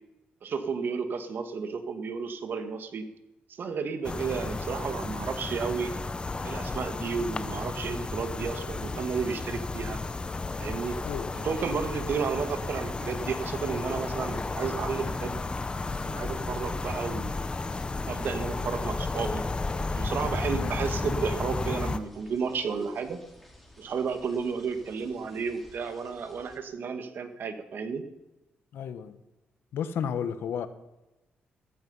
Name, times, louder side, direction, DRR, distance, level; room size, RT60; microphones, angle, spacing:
voice 1, 0.4-3.1 3.5-5.9 6.4-10.0 10.6-11.0 11.3-15.4 16.1-17.3 18.1-19.4 20.0-23.2 23.8-28.1, right 5 dB, 60° right, 8 dB, 1.8 m, -32 dB
sound 1, 4.0-22.0, left 3 dB, 25° left, 0.9 m, -33 dB
sound 2, 8.8-26.6, left 1 dB, ahead, 4.0 m, -53 dB
voice 2, 28.7-29.1 29.7-30.7, left 8 dB, 80° left, 11 dB, 1.2 m, -32 dB
15.0 x 14.0 x 5.6 m, 0.99 s
cardioid pair, 90°, 4 cm